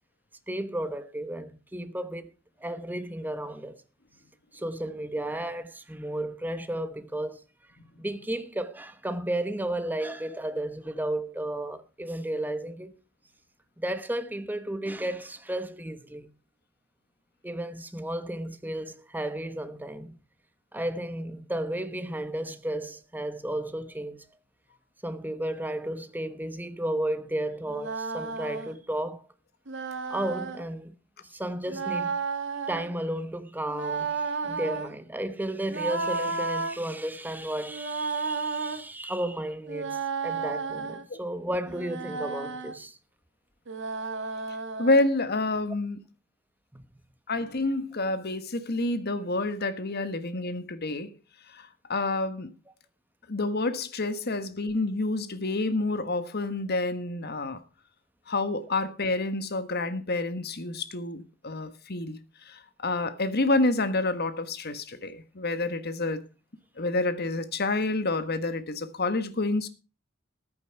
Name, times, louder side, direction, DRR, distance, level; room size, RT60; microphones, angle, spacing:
voice 1, 0.5-2.3 2.6-3.8 4.5-7.4 8.0-12.9 13.8-16.3 17.4-20.2 20.7-24.2 25.0-29.2 30.1-30.9 31.3-32.2 32.7-43.0 46.7-46.8, right 1 dB, 10° right, 1.1 m, -33 dB
sound 1, 27.7-28.7 29.7-30.6 31.7-32.9 33.7-34.9 35.7-36.8 37.7-38.8 39.7-41.0 41.7-42.7 43.7-45.1, right 4 dB, 60° right, 1.8 m, -32 dB
voice 2, 44.8-46.0 47.3-51.1 51.5-51.6 51.9-52.5 53.3-57.6 58.3-62.2 62.5-66.2 66.8-69.7, left 2 dB, 50° left, 1.4 m, -28 dB
14.0 x 9.6 x 4.6 m
head